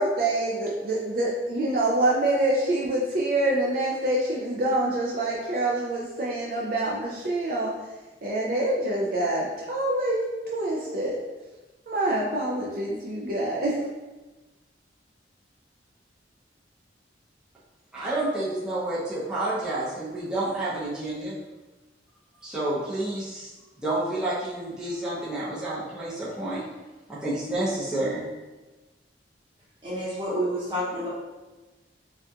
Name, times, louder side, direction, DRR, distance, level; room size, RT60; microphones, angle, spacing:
voice 1, 0.0-7.7 8.2-11.2 11.9-13.8, right 1 dB, 50° right, -4 dB, 0.4 m, -26 dB
voice 2, 17.9-21.3 22.4-23.5 23.8-26.6 27.1-28.2, right 1 dB, 5° right, -10 dB, 0.6 m, -29 dB
voice 3, 29.8-31.1, equal, 25° right, -7 dB, 1.0 m, -29 dB
3.5 x 2.3 x 2.7 m, 1.1 s
head